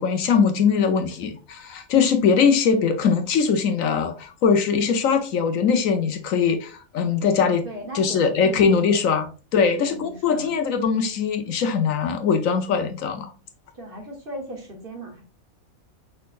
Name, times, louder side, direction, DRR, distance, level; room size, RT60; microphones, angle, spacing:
voice 1, 0.0-7.6 7.9-13.3, left 6 dB, 70° left, 1.1 m, -21 dB
voice 2, 7.6-9.0 9.5-10.5 13.7-15.2, right 1 dB, 40° right, 1.4 m, -37 dB
5.0 x 4.3 x 2.5 m
omnidirectional pair, 1.5 m